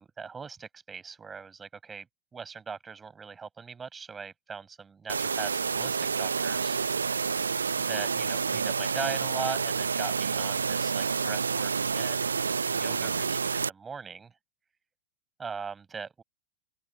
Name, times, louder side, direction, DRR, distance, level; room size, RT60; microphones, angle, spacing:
voice 1, 0.0-2.1 2.3-6.8 7.8-14.3 15.4-16.2, right 5 dB, 15° right, 7.8 m, -40 dB
sound 1, 5.1-13.7, right 5 dB, 75° right, 0.5 m, -29 dB
open air
figure-of-eight pair, 90°, 0 cm